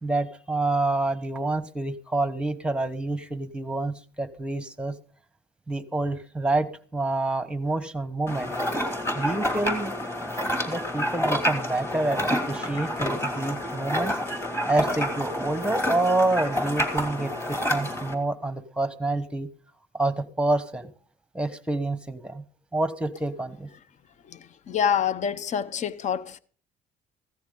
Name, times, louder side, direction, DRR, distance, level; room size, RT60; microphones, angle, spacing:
voice 1, 0.0-4.9 5.7-8.5 9.1-9.9 10.7-14.2 14.7-19.5 19.9-20.9 21.3-22.4 22.7-23.7, right 2 dB, 5° right, 1.1 m, -27 dB
sound 1, 8.3-18.1, equal, 15° left, 2.9 m, -28 dB
voice 2, 24.7-26.4, left 8 dB, 45° left, 0.7 m, -26 dB
16.0 x 13.0 x 3.8 m
cardioid pair, 110°, 17 cm